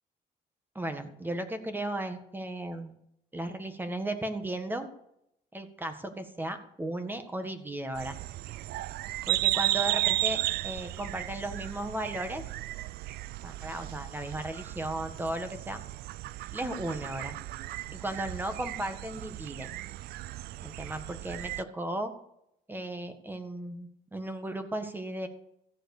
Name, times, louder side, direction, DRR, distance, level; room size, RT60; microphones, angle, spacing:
voice 1, 0.7-3.0 3.3-4.9 5.5-8.2 9.3-12.4 13.4-15.8 16.5-17.4 17.9-19.7 20.6-22.1 22.7-25.3, right 1 dB, 10° right, 8 dB, 1.7 m, -35 dB
sound 1, 8.0-21.6, right 16 dB, 75° right, 0.4 m, -34 dB
14.5 x 7.9 x 6.7 m, 0.76 s
cardioid pair, 115°, 16 cm